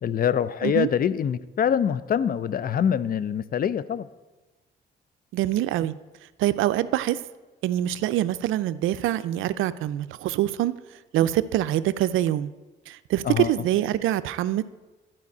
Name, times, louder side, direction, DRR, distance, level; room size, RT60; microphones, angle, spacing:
voice 1, 0.0-4.1 13.2-13.5, left 8 dB, 45° left, 16 dB, 0.5 m, -24 dB
voice 2, 5.3-5.9 6.4-7.2 7.6-10.7 11.1-12.5 12.9-14.6, right 13 dB, 85° right, 15 dB, 0.5 m, -24 dB
12.0 x 5.0 x 8.3 m, 1.2 s
cardioid pair, 90°, 20 cm